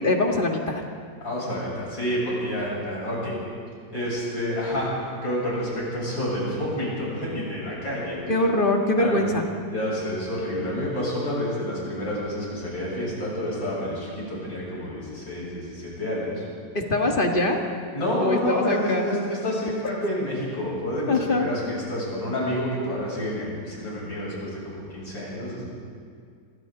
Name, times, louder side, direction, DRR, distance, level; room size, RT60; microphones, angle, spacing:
voice 1, 0.0-0.8 8.3-9.4 16.7-17.6 18.2-19.1 21.1-21.5, left 2 dB, 30° left, 2 dB, 1.9 m, -23 dB
voice 2, 1.2-3.4 3.9-4.9 5.2-8.2 9.0-9.2 9.7-16.4 17.9-25.6, left 1 dB, 75° left, -6 dB, 8.5 m, -29 dB
29.0 x 23.5 x 4.0 m, 2.1 s
omnidirectional pair, 2.0 m